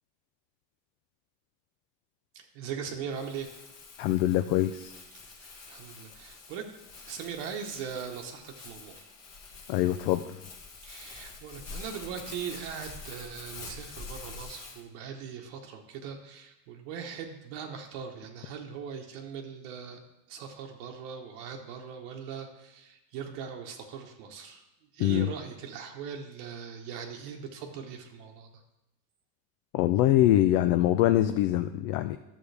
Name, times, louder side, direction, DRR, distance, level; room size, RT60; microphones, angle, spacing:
voice 1, 2.3-3.5 5.4-6.7 7.0-9.0 10.8-20.0 20.3-24.6 24.9-28.5, right 7 dB, 65° right, 3 dB, 1.1 m, -40 dB
Crumpling crinkling, 3.1-14.8, left 4 dB, 30° left, 1.4 m, -46 dB
voice 2, 4.0-4.9 9.7-10.4 25.0-25.3 29.7-32.2, left 13 dB, 55° left, 10 dB, 0.5 m, -24 dB
11.5 x 7.1 x 3.3 m, 0.94 s
cardioid pair, 155°, 49 cm